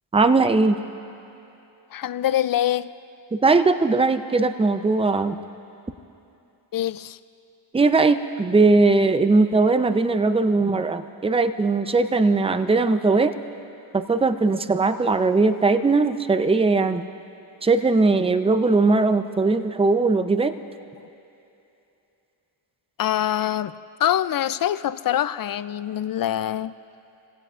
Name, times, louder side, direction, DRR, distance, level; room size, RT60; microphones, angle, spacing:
voice 1, 0.1-0.8 3.3-5.4 7.7-13.3 13.9-17.0 17.6-20.5, right 3 dB, 10° right, 10 dB, 0.6 m, -19 dB
voice 2, 1.9-2.9 6.7-7.2 21.0-21.1 23.0-23.7 24.0-26.7, left 11 dB, 50° left, 14 dB, 0.5 m, -24 dB
28.5 x 16.5 x 2.5 m, 2.8 s
cardioid pair, 70°, 46 cm